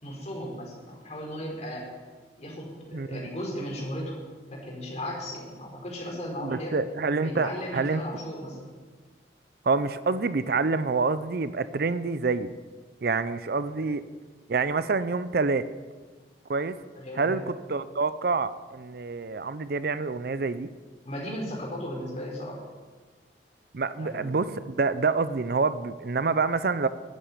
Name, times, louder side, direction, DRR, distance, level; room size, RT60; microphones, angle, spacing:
voice 1, 0.0-1.9 2.4-4.2 4.5-6.7 7.2-8.7 16.9-17.4 21.0-22.6 23.9-24.3, equal, 40° left, -2 dB, 4.6 m, -36 dB
voice 2, 2.9-3.3 6.4-8.0 9.7-12.5 13.0-14.0 14.5-15.6 16.5-16.8 17.2-20.7 23.7-26.9, right 4 dB, 60° right, 14 dB, 0.5 m, -27 dB
10.5 x 9.0 x 9.9 m, 1.4 s
head